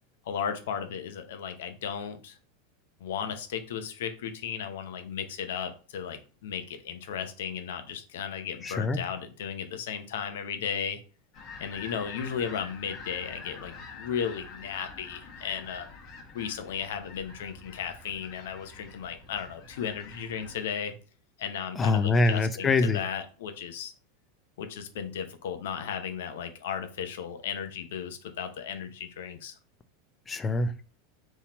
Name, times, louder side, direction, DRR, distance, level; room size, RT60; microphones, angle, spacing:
voice 1, 0.2-2.3 3.0-11.0 11.6-15.9 16.3-20.9 21.4-23.9 24.6-29.6, left 7 dB, 75° left, 0.8 m, -35 dB
voice 2, 8.6-9.0 21.8-23.0 30.3-30.8, left 3 dB, 20° left, 0.6 m, -24 dB
sound 1, 11.3-20.6, left 4 dB, 45° left, 1.4 m, -46 dB
4.1 x 3.1 x 4.2 m
hypercardioid pair, 105°, 0 cm